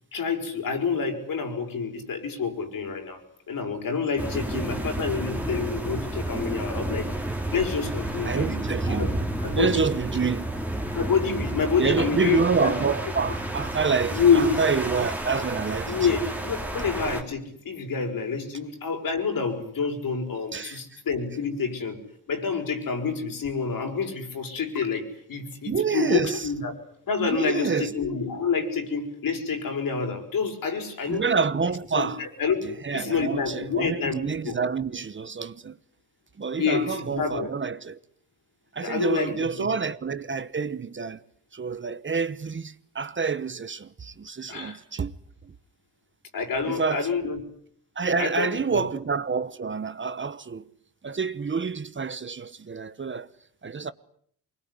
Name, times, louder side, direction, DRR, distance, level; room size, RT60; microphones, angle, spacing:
voice 1, 0.1-3.2 3.5-7.1 7.5-8.6 8.9-9.8 10.9-12.9 14.1-14.6 15.9-22.0 22.3-26.7 27.1-31.2 32.0-32.7 32.9-34.5 36.6-37.5 38.8-39.7 44.5-44.8 46.3-47.4 48.2-48.9, left 5 dB, 70° left, 5.8 m, -27 dB
sound 1, 4.2-17.2, right 1 dB, 5° right, 3.0 m, -31 dB
voice 2, 4.3-4.7 8.2-9.1 9.5-10.5 11.8-16.2 20.5-21.0 25.6-26.5 27.2-27.9 31.1-32.2 32.6-35.8 36.4-38.0 38.7-41.2 41.5-45.1 45.4-45.5 46.6-47.1 48.0-50.6 51.0-53.3 53.6-53.9, right 5 dB, 35° right, 1.1 m, -28 dB
24.5 x 21.5 x 9.8 m
cardioid pair, 90°, 36 cm